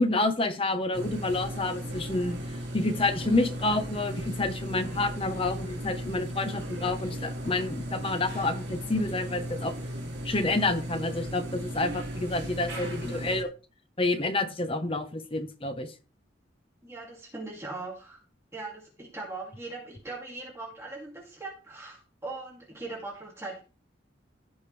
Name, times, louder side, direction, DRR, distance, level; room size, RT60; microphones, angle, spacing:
voice 1, 0.0-2.4 2.7-9.7 10.2-13.5 14.0-15.9, left 2 dB, 30° left, 8 dB, 0.9 m, -28 dB
sound 1, 0.9-13.4, equal, 60° right, 2.8 m, -36 dB
voice 2, 16.8-18.2 18.5-23.6, right 2 dB, 15° right, -3 dB, 2.6 m, -40 dB
15.5 x 5.2 x 3.3 m, 0.35 s
head